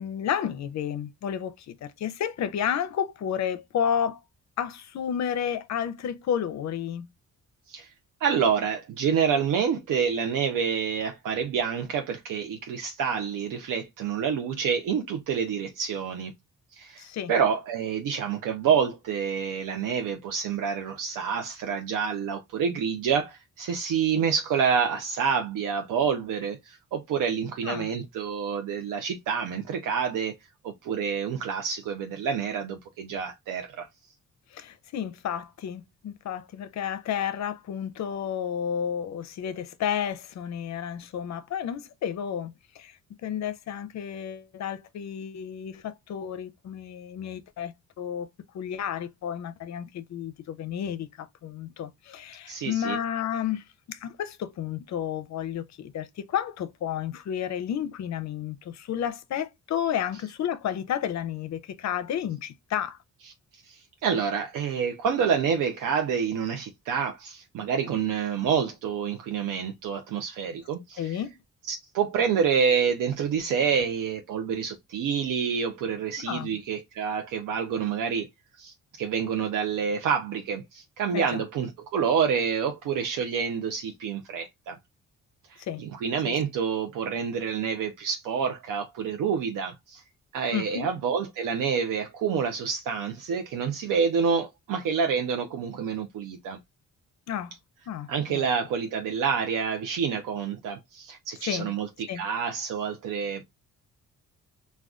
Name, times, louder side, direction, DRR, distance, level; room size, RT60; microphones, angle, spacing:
voice 1, 0.0-4.2 4.6-7.1 17.0-17.3 27.6-27.9 34.5-43.0 43.2-48.3 48.5-63.0 71.0-71.3 76.3-76.5 81.1-81.4 85.7-85.9 86.2-86.3 90.5-90.9 97.3-97.5 97.9-98.5 101.4-101.7 102.1-102.2, left 9 dB, 60° left, 0.5 m, -31 dB
voice 2, 8.2-16.3 16.7-30.3 30.6-33.9 52.5-53.0 63.6-71.2 71.7-78.3 78.6-84.8 85.5-90.0 90.3-96.6 98.1-103.4, right 6 dB, 85° right, 0.5 m, -28 dB
2.3 x 2.3 x 3.5 m
cardioid pair, 90°, 31 cm